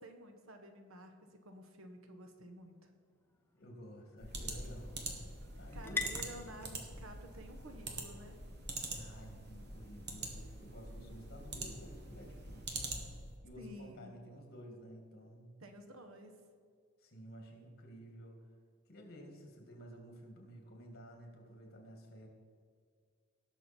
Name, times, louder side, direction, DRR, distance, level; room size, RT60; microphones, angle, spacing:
voice 1, 0.0-2.9 5.7-8.4 13.6-14.1 15.6-16.4, right 1 dB, 80° right, 5 dB, 1.4 m, -52 dB
sound 1, 2.5-10.2, left 3 dB, 10° left, 0.8 m, -48 dB
voice 2, 3.5-5.0 5.6-6.1 8.9-12.9 13.4-15.5 17.0-18.4 18.9-22.3, equal, 50° left, 2 dB, 2.4 m, -52 dB
sound 2, 4.2-13.3, right 2 dB, 55° right, 1.7 m, -44 dB
18.5 x 6.5 x 4.5 m, 2.1 s
head